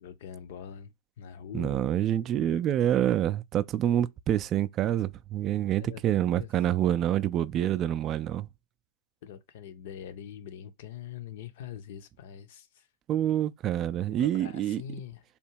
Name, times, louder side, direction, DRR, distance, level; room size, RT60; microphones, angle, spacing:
voice 1, 0.0-1.8 5.8-6.0 6.4-6.5 9.2-12.8 14.1-15.2, left 9 dB, 55° left, 0.6 m, -43 dB
voice 2, 1.5-8.5 13.1-14.8, right 11 dB, 30° right, 0.3 m, -27 dB
3.5 x 2.8 x 4.5 m
figure-of-eight pair, 90°, 0 cm